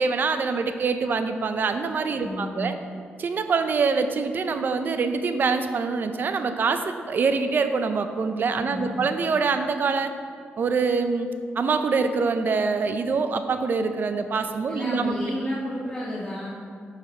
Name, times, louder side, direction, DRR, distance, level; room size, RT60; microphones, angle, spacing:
voice 1, 0.0-2.7 3.2-10.1 10.6-11.3 11.6-15.2, right 4 dB, 55° right, 8 dB, 0.5 m, -25 dB
voice 2, 2.2-2.7 8.6-9.0 14.7-16.5, left 1 dB, 15° left, -9 dB, 1.6 m, -32 dB
6.1 x 5.7 x 4.4 m, 2.3 s
cardioid pair, 75°, 4 cm